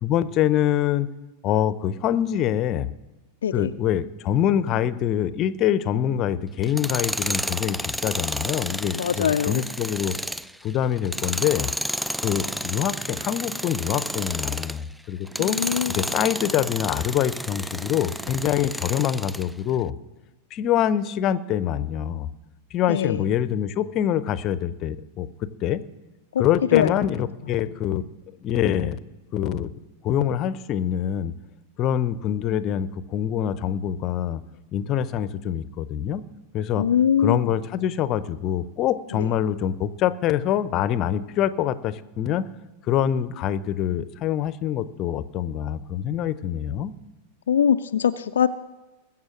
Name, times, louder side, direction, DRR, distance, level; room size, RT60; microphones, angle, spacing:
voice 1, 0.0-1.1 1.4-2.9 3.5-10.2 10.6-11.7 12.2-15.6 15.9-19.9 20.5-22.3 22.7-25.8 26.4-28.0 28.4-29.0 29.3-29.7 30.0-31.3 31.8-34.4 34.7-36.2 36.5-36.9 37.2-42.5 42.9-46.9, left 10 dB, 35° left, 16 dB, 0.7 m, -25 dB
voice 2, 3.4-3.7 8.9-9.6 15.4-16.1 22.9-23.3 26.3-26.4 26.7-26.9 36.8-37.6 39.1-39.3 47.5-48.5, left 8 dB, 65° left, 9 dB, 0.4 m, -22 dB
Tools, 6.6-14.8 15.3-19.5, equal, ahead, 0.4 m, -31 dB
20.5 x 7.5 x 6.3 m, 1.1 s
figure-of-eight pair, 90°, 0 cm